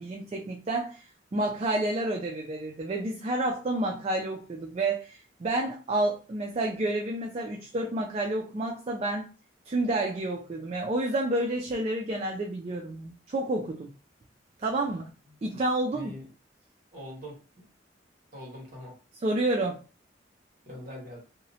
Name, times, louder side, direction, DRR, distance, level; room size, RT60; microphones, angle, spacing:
voice 1, 0.0-9.3 9.7-13.9 14.6-15.1 15.4-16.1 19.2-19.8, right 2 dB, 35° right, 0 dB, 0.3 m, -29 dB
voice 2, 15.9-16.2 16.9-17.6 18.3-18.9 20.7-21.2, left 1 dB, 50° right, -3 dB, 1.4 m, -42 dB
2.8 x 2.0 x 2.7 m, 0.35 s
head